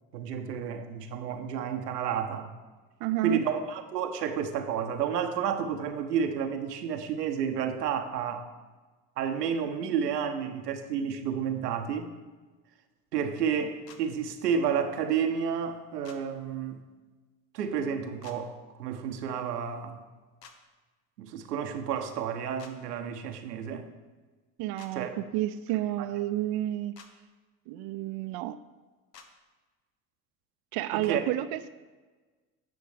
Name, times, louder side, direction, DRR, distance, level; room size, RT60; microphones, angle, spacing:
voice 1, 0.1-2.5 3.2-8.5 9.2-12.1 13.1-16.8 17.5-20.0 21.2-23.9 24.9-25.1 30.9-31.2, right 7 dB, 90° right, 6 dB, 0.9 m, -31 dB
voice 2, 3.0-3.4 24.6-26.9 27.7-28.6 30.7-31.7, right 14 dB, 55° right, 11 dB, 0.5 m, -30 dB
sound 1, 13.9-14.0 16.0-16.2 18.2-18.4 20.4-20.6 22.6-22.7 24.8-24.9 27.0-27.1 29.1-29.3, left 6 dB, 85° left, 0.9 m, -50 dB
9.5 x 6.2 x 4.9 m, 1.3 s
hypercardioid pair, 70°, 47 cm